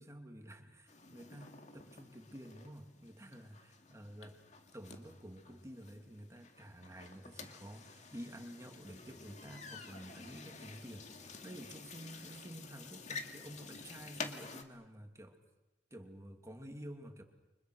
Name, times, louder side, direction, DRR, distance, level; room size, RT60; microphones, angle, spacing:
voice 1, 0.0-4.4 4.7-15.4 15.9-17.2, equal, 15° right, 4 dB, 2.6 m, -51 dB
sound 1, 0.9-14.6, left 4 dB, 40° left, 2.2 m, -50 dB
30.0 x 25.0 x 6.4 m, 1.1 s
head